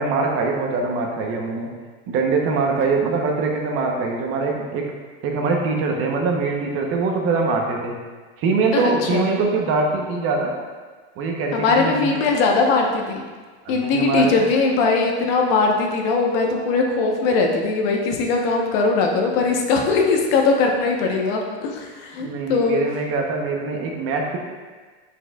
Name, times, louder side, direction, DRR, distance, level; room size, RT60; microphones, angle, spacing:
voice 1, 0.0-1.7 2.1-4.9 5.2-8.0 8.4-10.6 11.2-12.2 13.6-14.4 22.2-24.4, right 4 dB, 40° right, 1 dB, 0.9 m, -23 dB
voice 2, 8.7-9.3 11.5-13.2 13.7-22.8, left 4 dB, 55° left, 1 dB, 1.0 m, -20 dB
7.4 x 6.3 x 2.4 m, 1.4 s
supercardioid pair, 145°, 34 cm